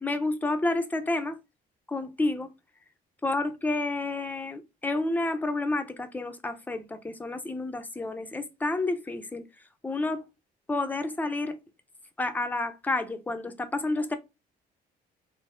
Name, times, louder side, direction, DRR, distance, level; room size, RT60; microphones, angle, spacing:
voice 1, 0.0-1.4 1.9-2.5 3.2-9.4 9.8-10.2 10.7-11.6 12.2-14.2, left 2 dB, 10° left, 0.6 m, -30 dB
4.1 x 2.0 x 3.6 m
cardioid pair, 110°, 17 cm